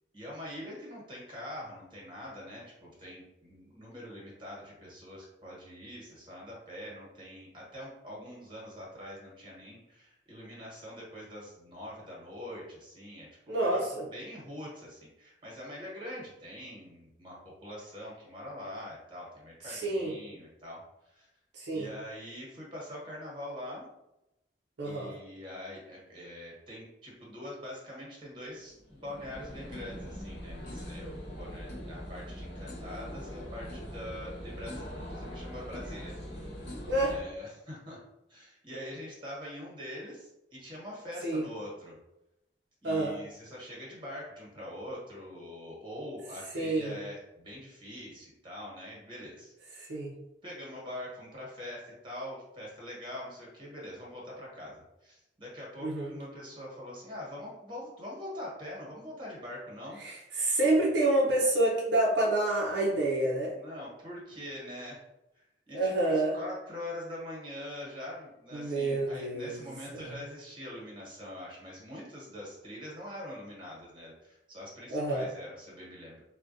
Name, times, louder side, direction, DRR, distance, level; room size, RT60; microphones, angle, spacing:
voice 1, 0.1-21.3 21.7-23.9 24.8-36.7 37.1-38.0 38.3-41.9 42.8-49.9 50.4-60.0 63.5-65.0 65.3-76.2, left 1 dB, 30° right, -4 dB, 1.2 m, -44 dB
voice 2, 13.5-14.1 19.7-20.1 21.5-21.9 24.8-25.1 35.2-35.3 36.9-37.2 41.2-41.5 42.8-43.2 46.5-47.0 49.8-50.1 55.8-56.1 60.0-63.5 65.7-66.3 68.5-70.1 74.9-75.3, right 2 dB, 75° right, -3 dB, 0.6 m, -28 dB
sound 1, 28.5-37.2, equal, 70° left, 0.9 m, -42 dB
3.6 x 2.2 x 2.6 m, 0.90 s
head